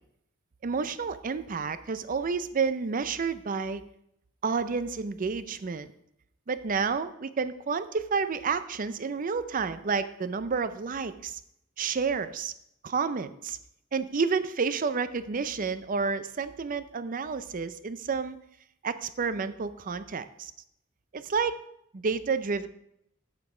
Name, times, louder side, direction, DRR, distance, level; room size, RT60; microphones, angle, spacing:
voice 1, 0.6-3.8 4.4-5.9 6.5-11.4 11.8-12.5 12.8-13.6 13.9-18.4 18.8-20.5 21.1-21.6 21.9-22.7, right 5 dB, 40° right, 13 dB, 0.5 m, -30 dB
7.5 x 7.4 x 4.8 m, 0.76 s
head